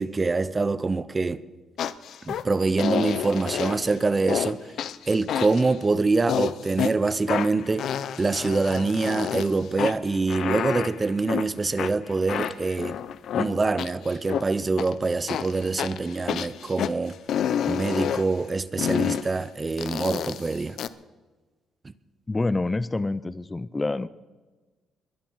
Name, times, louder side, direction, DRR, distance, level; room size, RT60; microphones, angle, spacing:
voice 1, 0.0-1.4 2.2-4.7 5.1-7.9 8.2-13.0 13.3-17.1 17.7-20.8, right 3 dB, 25° right, 0.7 m, -25 dB
sound 1, 1.8-2.4 2.8-3.9 4.3-4.5 4.8-5.8 6.3-6.9 7.3-9.5 9.8-11.5 11.8-14.4 14.8-14.9 15.3-16.9 17.3-18.3 18.8-19.3 19.8-20.9, left 9 dB, 70° left, 0.6 m, -29 dB
voice 2, 22.3-24.1, left 2 dB, 20° left, 0.5 m, -27 dB
21.5 x 11.5 x 4.7 m
cardioid pair, 90°, 0 cm